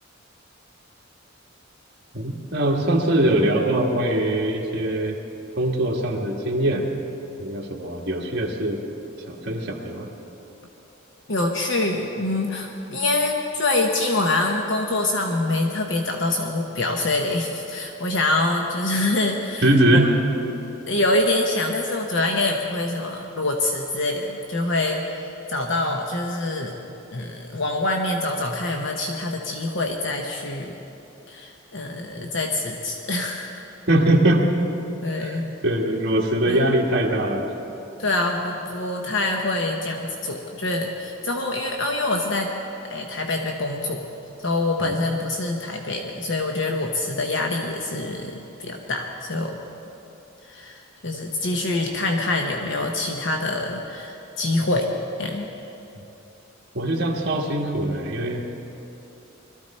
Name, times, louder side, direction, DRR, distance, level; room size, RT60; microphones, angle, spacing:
voice 1, 2.1-5.2 5.6-6.8 7.4-8.8 9.3-10.1 19.6-20.1 33.9-34.4 35.2-35.4 35.6-37.5 44.8-44.9 56.7-58.4, right 1 dB, 55° right, 0 dB, 1.6 m, -22 dB
voice 2, 11.3-20.1 20.9-26.8 27.1-30.8 31.3-33.6 35.0-35.5 36.5-36.6 38.0-42.5 42.9-44.0 44.4-49.6 50.4-54.9 55.2-55.5, left 2 dB, 60° left, 2 dB, 1.0 m, -25 dB
21.0 x 13.5 x 4.3 m, 2.9 s
head